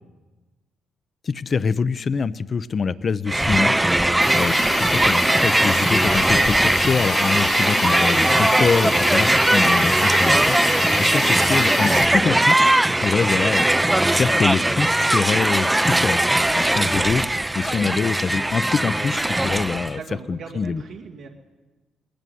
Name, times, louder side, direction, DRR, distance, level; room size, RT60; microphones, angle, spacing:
voice 1, 1.2-3.7 4.1-13.7 14.1-17.2 17.5-20.0 20.3-20.8, left 5 dB, 40° left, 14 dB, 0.6 m, -25 dB
Crowd, 3.3-20.0, right 1 dB, 10° right, 0.6 m, -19 dB
Hiss, 4.2-12.1, left 7 dB, 65° left, 1.4 m, -30 dB
voice 2, 19.9-21.3, right 5 dB, 80° right, -1 dB, 2.3 m, -39 dB
19.5 x 15.5 x 9.4 m, 1.2 s
cardioid pair, 90°, 0 cm